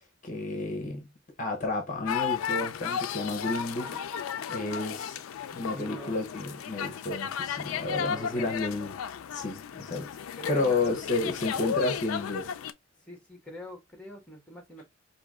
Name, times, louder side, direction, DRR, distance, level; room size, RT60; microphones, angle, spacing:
voice 1, 0.2-1.1 1.4-4.0 4.5-5.2 5.5-8.9 9.3-10.1 10.5-12.5, left 2 dB, 40° left, 0.8 m, -31 dB
sound 1, 2.1-12.7, left 8 dB, 85° left, 0.4 m, -34 dB
voice 2, 5.7-6.2 7.8-8.8 10.3-10.8 13.0-14.8, equal, 5° left, 1.3 m, -44 dB
4.8 x 2.7 x 2.3 m
head